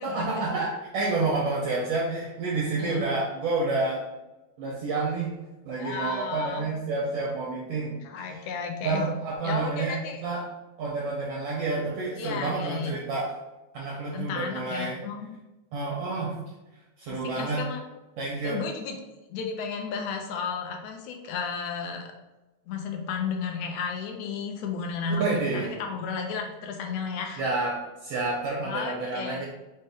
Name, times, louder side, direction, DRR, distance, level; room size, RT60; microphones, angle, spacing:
voice 1, 0.0-4.0 4.6-5.3 5.6-8.0 8.3-8.4 8.8-10.0 10.2-10.5 10.8-13.4 13.7-15.0 15.7-16.4 17.0-17.6 18.2-18.6 25.2-25.7 27.4-29.5, right 3 dB, 80° right, -4 dB, 1.4 m, -29 dB
voice 2, 5.8-6.7 8.0-9.1 9.4-10.2 12.2-12.9 14.1-15.2 17.1-17.8 18.4-19.0 19.3-22.1 22.7-25.3 25.5-27.4 28.6-29.5, left 5 dB, 80° left, 3 dB, 1.8 m, -33 dB
5.3 x 2.2 x 3.3 m, 1.1 s
omnidirectional pair, 3.4 m